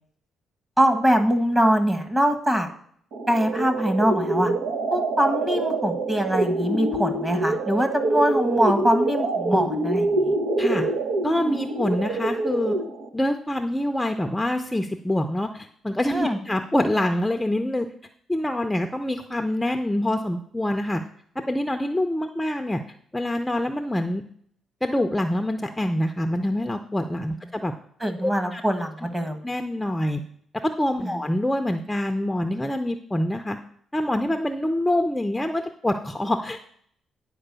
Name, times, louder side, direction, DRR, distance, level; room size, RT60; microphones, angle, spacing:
voice 1, 0.8-2.7 3.3-4.5 4.9-10.3 16.1-16.4 28.0-29.4 31.0-31.1, equal, 20° right, 7 dB, 1.5 m, -23 dB
sound 1, 3.1-13.1, right 2 dB, 85° right, 1.2 m, -25 dB
voice 2, 11.2-12.8 13.1-17.9 18.3-21.0 21.5-22.8 23.1-24.2 24.8-27.7 28.2-28.6 29.4-30.2 30.6-33.6 33.9-36.6, left 1 dB, 10° left, 6 dB, 0.6 m, -25 dB
10.0 x 4.7 x 6.8 m, 0.63 s
cardioid pair, 90°, 0 cm